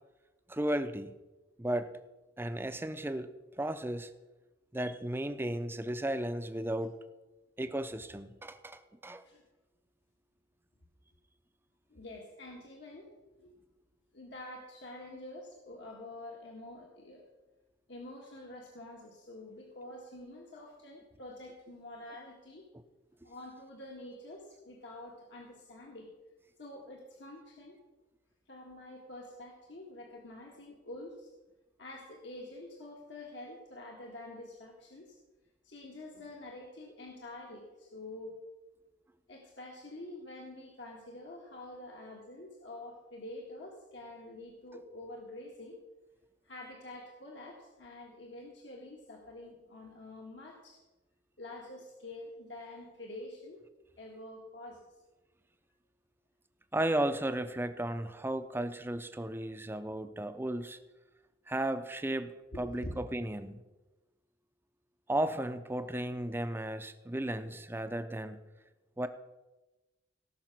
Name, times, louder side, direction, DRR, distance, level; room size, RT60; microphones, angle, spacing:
voice 1, 0.5-1.1 1.6-1.9 2.4-3.3 3.6-4.1 4.7-6.9 7.6-9.2 56.7-60.8 61.5-63.6 65.1-68.4 69.0-69.1, right 1 dB, 10° right, 10 dB, 0.6 m, -34 dB
voice 2, 11.9-13.6 14.1-17.2 17.9-22.7 23.2-26.1 26.6-27.8 28.5-31.3 31.8-35.2 35.6-38.4 39.3-45.8 46.4-50.8 51.4-53.6 54.0-54.9 62.5-62.9, left 1 dB, 65° left, -1 dB, 1.8 m, -47 dB
18.0 x 6.0 x 6.0 m, 1.1 s
head